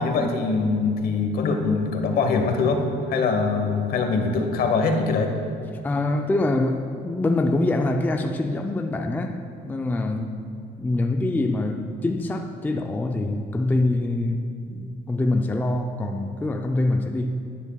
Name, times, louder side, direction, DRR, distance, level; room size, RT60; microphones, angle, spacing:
voice 1, 0.0-2.8 3.1-5.3, left 4 dB, 60° left, 4 dB, 1.0 m, -23 dB
voice 2, 5.8-10.4 10.8-17.4, left 2 dB, 10° left, 4 dB, 0.4 m, -25 dB
10.0 x 9.9 x 2.3 m, 2.5 s
cardioid pair, 110°, 17 cm